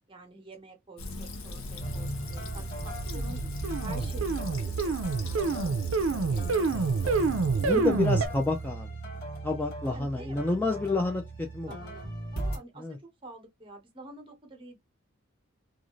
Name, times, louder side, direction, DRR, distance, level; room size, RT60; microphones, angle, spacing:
voice 1, 0.1-3.4 3.8-5.7 6.0-7.7 9.8-10.8 11.6-14.8, right 2 dB, 25° right, 1.0 m, -48 dB
Fill (with liquid), 1.0-8.6, left 1 dB, 70° left, 0.7 m, -38 dB
sound 1, 1.8-12.6, right 2 dB, 50° left, 1.3 m, -39 dB
sound 2, 2.9-8.3, right 4 dB, 70° right, 0.4 m, -28 dB
voice 2, 7.6-8.9 9.4-11.8 12.8-13.0, left 3 dB, 10° left, 0.4 m, -29 dB
2.6 x 2.4 x 3.0 m
head